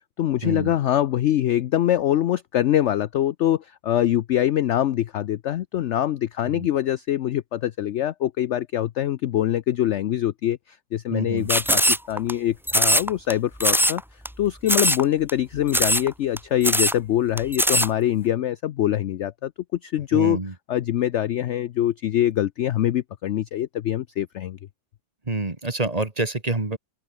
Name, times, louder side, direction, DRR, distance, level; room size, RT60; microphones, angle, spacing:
voice 1, 0.2-14.0 14.4-19.5 19.8-20.4 20.7-24.6, left 12 dB, 70° left, 0.7 m, -24 dB
voice 2, 11.1-11.5 20.1-20.5 25.3-26.8, right 2 dB, 25° right, 2.0 m, -27 dB
sound 1, 11.5-12.3 12.7-13.3 13.6-14.0 14.2-14.3 14.7-15.0 15.3-15.4 15.7-16.1 16.4-16.5 16.6-17.0 17.4-17.9, equal, ahead, 0.9 m, -20 dB
open air
omnidirectional pair, 1.8 m